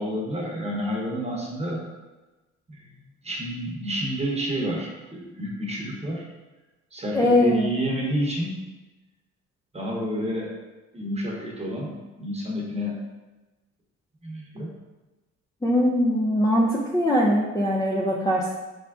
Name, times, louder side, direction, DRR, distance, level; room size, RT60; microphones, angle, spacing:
voice 1, 0.0-1.8 2.7-2.9 3.2-6.3 6.9-8.5 9.7-10.6 10.9-13.0 14.2-14.7, equal, 20° right, -2 dB, 0.9 m, -29 dB
voice 2, 7.1-7.7 15.6-18.5, left 1 dB, 10° left, -4 dB, 0.4 m, -21 dB
3.6 x 3.5 x 2.4 m, 1.2 s
cardioid pair, 90°, 30 cm